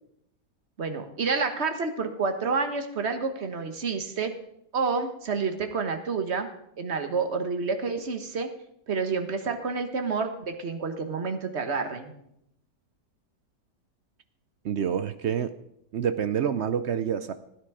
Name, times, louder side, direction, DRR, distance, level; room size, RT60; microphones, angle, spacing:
voice 1, 0.8-4.3 4.7-6.5 6.8-8.5 8.9-12.1, right 4 dB, 45° right, 7 dB, 1.4 m, -29 dB
voice 2, 14.6-15.5 15.9-17.3, right 8 dB, 70° right, 11 dB, 0.6 m, -27 dB
16.0 x 9.7 x 4.8 m, 0.76 s
omnidirectional pair, 1.8 m